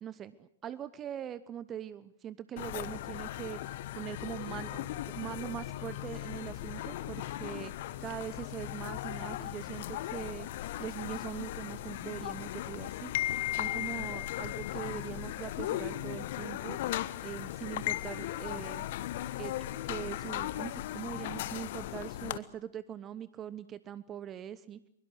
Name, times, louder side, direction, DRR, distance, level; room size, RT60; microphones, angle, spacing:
voice 1, 0.0-7.7 8.0-13.1 13.5-16.8 17.2-18.9 19.4-19.5 19.8-24.8, right 10 dB, 20° right, 17 dB, 0.9 m, -42 dB
sound 1, 2.6-22.4, left 14 dB, 45° left, 1.1 m, -37 dB
23.0 x 22.5 x 8.0 m, 0.74 s
figure-of-eight pair, 110°, 0 cm